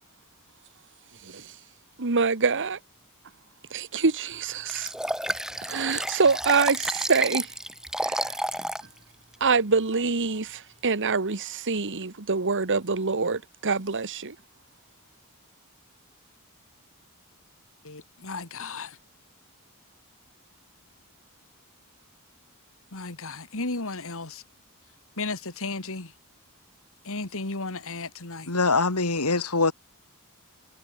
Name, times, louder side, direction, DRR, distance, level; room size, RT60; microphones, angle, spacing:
voice 1, 1.2-1.5 2.0-2.8 3.7-4.9 5.6-7.5 8.0-8.4 9.4-14.3, right 4 dB, 55° right, 1.4 m, -25 dB
Liquid, 4.7-8.9 9.3-9.4, right 1 dB, 5° right, 2.7 m, -30 dB
voice 2, 17.8-19.0 22.9-24.4 25.2-26.1 27.0-28.5, left 3 dB, 65° left, 2.9 m, -34 dB
voice 3, 28.5-29.7, left 3 dB, 85° left, 3.4 m, -23 dB
head